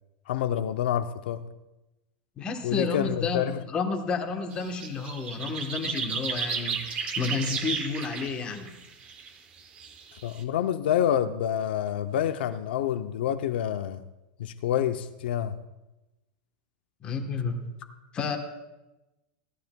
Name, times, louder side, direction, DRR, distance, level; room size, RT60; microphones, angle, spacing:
voice 1, 0.3-1.4 2.6-3.6 10.2-14.0 14.4-15.6, left 10 dB, 90° left, 9 dB, 0.5 m, -27 dB
voice 2, 2.4-8.7 17.0-17.7 18.1-18.4, left 4 dB, 20° left, 4 dB, 1.1 m, -31 dB
sound 1, 4.5-9.3 9.6-10.4, right 6 dB, 25° right, 0.8 m, -33 dB
16.5 x 12.5 x 2.2 m, 1.0 s
supercardioid pair, 175°, 5 cm